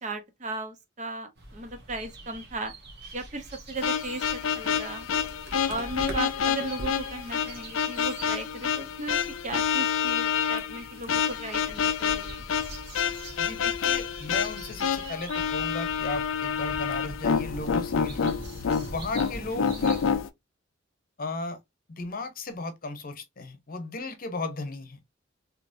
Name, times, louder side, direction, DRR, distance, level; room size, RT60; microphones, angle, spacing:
voice 1, 0.0-2.7 3.1-5.1 5.7-12.4 19.4-19.6, right 2 dB, 40° right, 0.8 m, -36 dB
sound 1, 1.3-20.1, right 1 dB, 60° right, 1.1 m, -44 dB
sound 2, 3.8-20.3, left 7 dB, 85° left, 0.4 m, -28 dB
voice 2, 13.4-18.3 18.9-20.0 21.2-21.6 21.9-25.0, left 2 dB, 50° left, 0.8 m, -35 dB
3.6 x 2.9 x 2.6 m
head